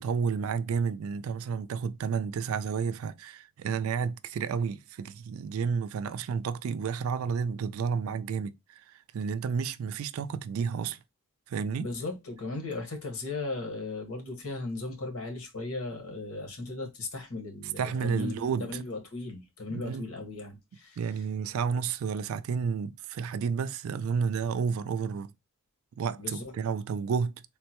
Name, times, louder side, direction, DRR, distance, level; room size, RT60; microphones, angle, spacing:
voice 1, 0.0-8.5 8.9-11.0 11.5-11.9 17.8-18.8 19.7-20.0 21.0-25.3 26.0-27.4, right 6 dB, 75° right, 0.3 m, -31 dB
voice 2, 11.8-21.0 26.2-26.5, left 3 dB, 85° left, 1.2 m, -37 dB
3.7 x 2.2 x 2.8 m
head